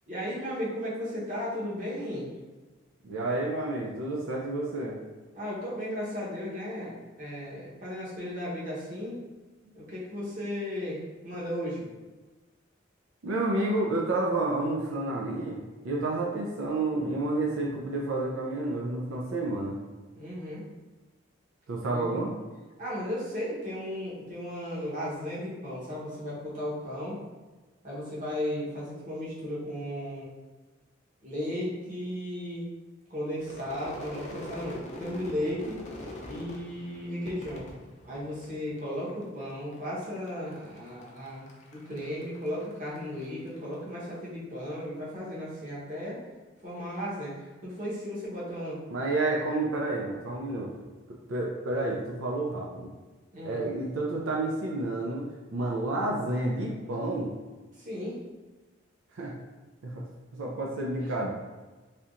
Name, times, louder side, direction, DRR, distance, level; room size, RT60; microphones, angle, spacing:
voice 1, 0.1-2.3 5.3-9.2 9.7-11.9 20.1-20.6 21.9-22.2 22.8-27.2 27.8-30.3 31.2-32.7 33.1-35.8 36.2-37.7 38.0-41.4 41.7-46.2 46.6-48.8 53.3-53.6 57.8-58.2, equal, 40° right, -7 dB, 1.0 m, -35 dB
voice 2, 3.0-5.0 13.2-19.8 21.7-22.3 48.9-50.7 51.3-52.9 53.4-55.2 55.5-57.3 59.1-59.3 59.8-60.0 60.3-61.3, right 2 dB, 90° right, -2 dB, 0.5 m, -30 dB
Crowd / Fireworks, 33.4-38.8 39.1-39.7 40.0-43.6, left 1 dB, 35° left, 0.4 m, -43 dB
3.4 x 2.8 x 2.5 m, 1.2 s
head